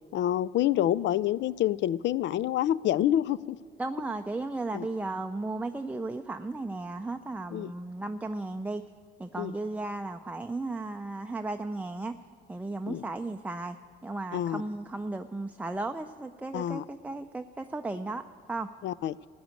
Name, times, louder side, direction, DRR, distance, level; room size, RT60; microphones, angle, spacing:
voice 1, 0.1-3.6 4.7-4.9 7.5-7.7 9.4-9.5 12.9-13.0 14.3-14.6 16.5-16.8 18.8-19.2, left 12 dB, 65° left, 20 dB, 0.4 m, -27 dB
voice 2, 3.8-8.8 9.2-12.2 12.5-13.8 14.0-18.7, right 2 dB, 10° right, 7 dB, 0.4 m, -35 dB
12.0 x 9.5 x 8.9 m, 2.1 s
cardioid pair, 90°, 20 cm